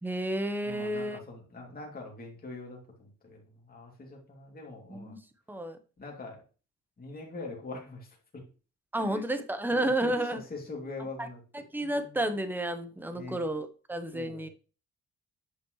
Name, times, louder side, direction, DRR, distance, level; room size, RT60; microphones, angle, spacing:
voice 1, 0.0-1.2 4.9-5.2 5.5-5.8 8.9-10.4 11.2-11.3 11.5-14.5, right 1 dB, 5° right, 9 dB, 1.0 m, -31 dB
voice 2, 0.6-5.2 6.0-6.4 7.0-8.4 9.0-9.2 9.7-11.4 11.8-12.2 13.1-13.4 14.1-14.5, left 3 dB, 30° left, -2 dB, 2.7 m, -43 dB
9.0 x 5.2 x 3.2 m, 0.35 s
cardioid pair, 90°, 30 cm